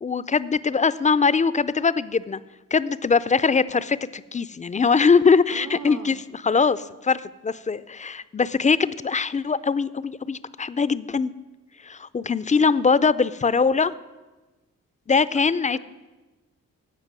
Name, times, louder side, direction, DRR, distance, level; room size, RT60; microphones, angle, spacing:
voice 1, 0.0-2.4 2.7-11.3 11.9-13.9 15.1-15.8, left 5 dB, 20° left, 16 dB, 0.4 m, -22 dB
voice 2, 5.1-6.2 15.7-15.8, right 5 dB, 45° right, 8 dB, 0.7 m, -40 dB
15.5 x 5.2 x 6.0 m, 1.2 s
cardioid pair, 55°, 35 cm